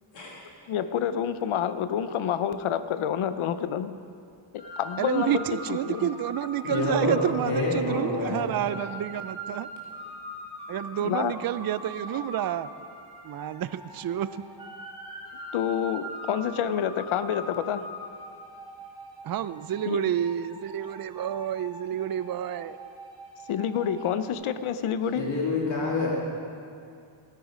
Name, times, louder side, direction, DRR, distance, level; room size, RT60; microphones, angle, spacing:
voice 1, 0.7-3.9 4.5-6.1 11.0-11.3 15.5-17.9 19.9-20.0 23.5-25.2, left 9 dB, 80° left, 12 dB, 0.7 m, -28 dB
sound 1, 4.6-24.3, equal, 10° right, 2.8 m, -42 dB
voice 2, 5.0-9.7 10.7-12.7 13.2-14.4 19.2-22.8, right 10 dB, 50° right, 14 dB, 0.5 m, -29 dB
voice 3, 6.6-8.5 25.1-26.1, left 2 dB, 60° left, -4 dB, 2.5 m, -27 dB
17.5 x 9.3 x 5.0 m, 2.4 s
cardioid pair, 105°, 49 cm